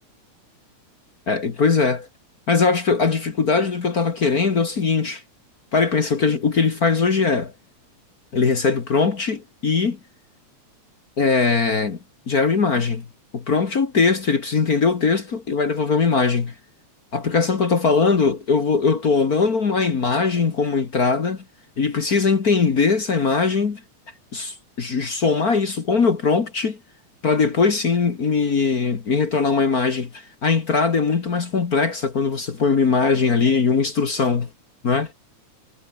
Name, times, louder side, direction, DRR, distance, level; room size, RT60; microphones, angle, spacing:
voice 1, 1.3-2.1 2.5-5.2 5.7-7.5 8.3-10.0 11.2-12.0 12.3-13.1 13.3-16.5 17.1-21.4 21.8-23.8 24.3-26.8 27.2-34.5 34.8-35.1, left 4 dB, 40° left, 1.6 m, -20 dB
omnidirectional pair, 3.4 m